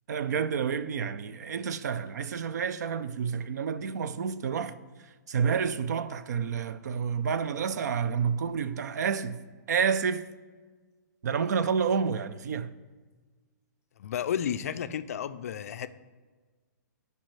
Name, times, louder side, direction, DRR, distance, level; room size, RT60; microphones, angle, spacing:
voice 1, 0.1-4.8 5.3-9.4 9.7-10.3 11.2-12.7, right 6 dB, 60° right, 0.5 m, -29 dB
voice 2, 14.0-15.9, left 9 dB, 50° left, 0.4 m, -32 dB
13.0 x 5.4 x 3.2 m
hypercardioid pair, 170°, 10 cm